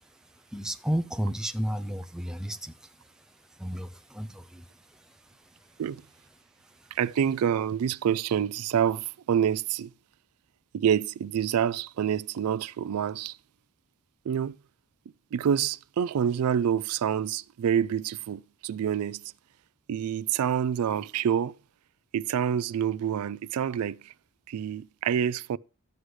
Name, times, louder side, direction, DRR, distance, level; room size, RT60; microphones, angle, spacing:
voice 1, 0.5-2.9 3.6-5.2 6.8-6.9, equal, 5° right, 0.4 m, -33 dB
voice 2, 6.9-9.9 10.7-13.4 14.3-14.5 15.3-19.2 19.9-21.5 22.1-24.1 24.5-25.6, right 8 dB, 90° right, 0.3 m, -27 dB
11.5 x 7.8 x 3.2 m
head